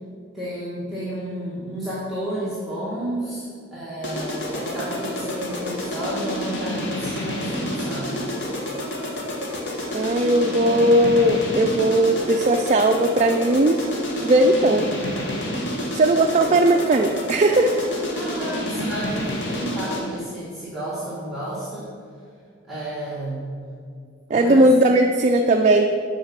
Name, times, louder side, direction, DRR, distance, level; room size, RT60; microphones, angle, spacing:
voice 1, 0.3-3.4 3.7-8.3 18.1-21.9 22.7-23.5 24.3-24.6, right 1 dB, ahead, -11 dB, 1.4 m, -31 dB
sound 1, 4.0-20.2, left 1 dB, 60° left, 1.4 m, -29 dB
voice 2, 9.9-13.8 14.2-14.9 15.9-17.7 24.3-25.8, right 1 dB, 35° right, 3 dB, 0.3 m, -18 dB
9.7 x 4.9 x 5.9 m, 2.2 s
head